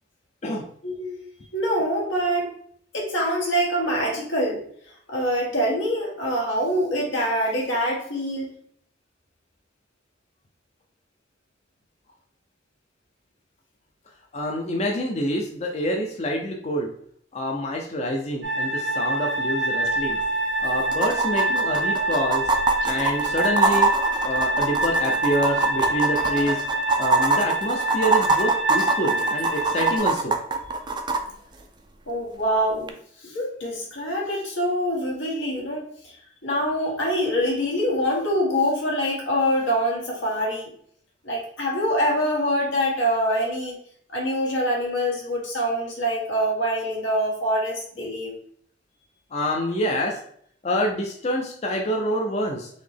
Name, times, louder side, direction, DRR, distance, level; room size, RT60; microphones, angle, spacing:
voice 1, 0.8-1.2 1.5-2.5 2.9-4.6 5.1-8.5 32.1-32.9 33.2-36.1 36.4-40.7 41.2-43.8 44.1-48.3, equal, 85° left, -3 dB, 1.6 m, -25 dB
voice 2, 14.3-16.9 17.3-20.2 20.6-22.5 22.9-23.9 24.2-26.6 27.0-30.3 49.3-50.2 50.6-52.7, equal, 35° left, 1 dB, 0.5 m, -26 dB
sound 1, 18.4-30.0, right 1 dB, 90° right, 1.5 m, -26 dB
sound 2, 19.9-20.0 20.2-20.3 20.9-31.2 32.9-33.0, right 3 dB, 25° right, 0.3 m, -23 dB
3.9 x 3.0 x 3.3 m, 0.62 s
head